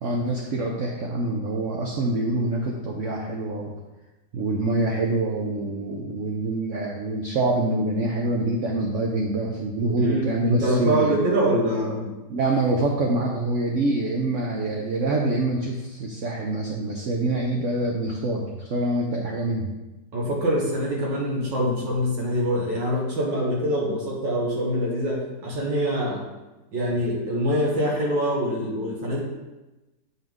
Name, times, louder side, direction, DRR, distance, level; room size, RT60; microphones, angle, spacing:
voice 1, 0.0-3.7 4.3-11.3 12.3-19.7, right 2 dB, 55° right, 0 dB, 0.9 m, -25 dB
voice 2, 10.0-12.1 20.1-26.3 26.7-29.2, equal, 90° right, -3 dB, 2.2 m, -24 dB
7.6 x 5.7 x 3.6 m, 1.1 s
omnidirectional pair, 1.9 m